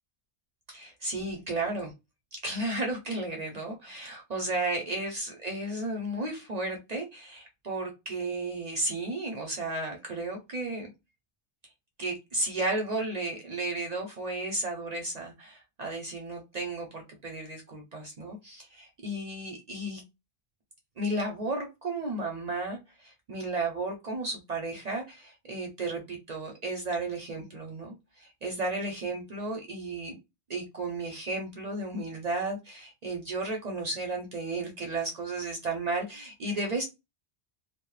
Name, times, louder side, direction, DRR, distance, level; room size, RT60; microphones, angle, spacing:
voice 1, 0.7-1.9 2.4-10.9 12.0-20.0 21.0-30.2 30.5-36.8, right 2 dB, 50° right, 2 dB, 0.5 m, -33 dB
2.1 x 2.0 x 3.0 m, 0.23 s
omnidirectional pair, 1.1 m